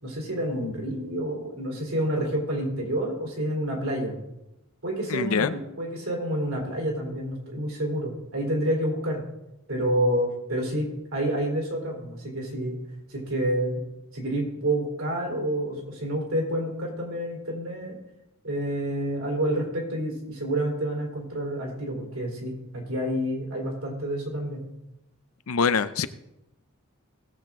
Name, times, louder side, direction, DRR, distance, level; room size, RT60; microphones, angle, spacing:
voice 1, 0.0-4.1 4.8-9.3 9.7-12.8 13.1-13.8 14.1-18.0 18.4-24.6, right 1 dB, 70° right, -1 dB, 3.8 m, -28 dB
voice 2, 5.1-5.5 25.5-26.1, left 5 dB, 85° left, 14 dB, 0.6 m, -24 dB
17.5 x 7.5 x 3.7 m, 0.91 s
head